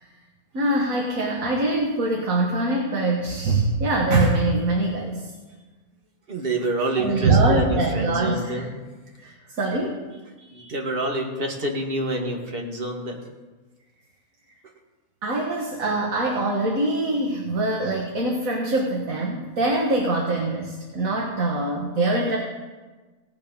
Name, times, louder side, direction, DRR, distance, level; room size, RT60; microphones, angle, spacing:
voice 1, 0.5-5.3 7.0-8.6 9.2-10.0 15.2-22.4, right 2 dB, 65° right, -1 dB, 1.8 m, -23 dB
voice 2, 6.3-8.7 10.4-13.2, right 1 dB, 40° right, 1 dB, 1.8 m, -27 dB
18.0 x 7.3 x 5.3 m, 1.3 s
omnidirectional pair, 1.5 m